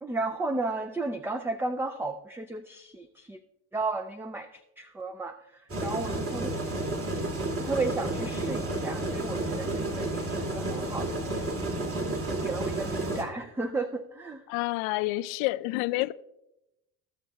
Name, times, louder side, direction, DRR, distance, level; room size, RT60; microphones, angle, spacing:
voice 1, 0.0-3.4 3.7-6.6 7.6-11.5 11.8-14.4, right 3 dB, 5° right, 0.4 m, -34 dB
sound 1, 5.7-13.2, right 2 dB, 35° right, 2.4 m, -31 dB
voice 2, 14.5-16.1, left 19 dB, 75° left, 0.6 m, -28 dB
15.5 x 6.6 x 2.3 m
supercardioid pair, 80°, 40 cm